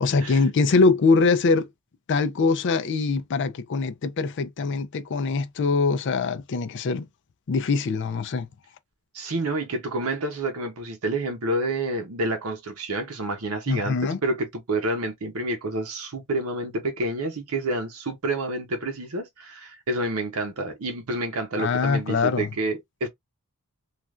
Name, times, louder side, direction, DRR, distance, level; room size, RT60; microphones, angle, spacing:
voice 1, 0.0-1.7 2.1-7.0 7.5-8.5 13.7-14.2 21.6-22.5, left 4 dB, 55° left, 0.4 m, -23 dB
voice 2, 9.1-23.1, right 2 dB, 75° right, 0.7 m, -29 dB
3.2 x 2.4 x 2.4 m
head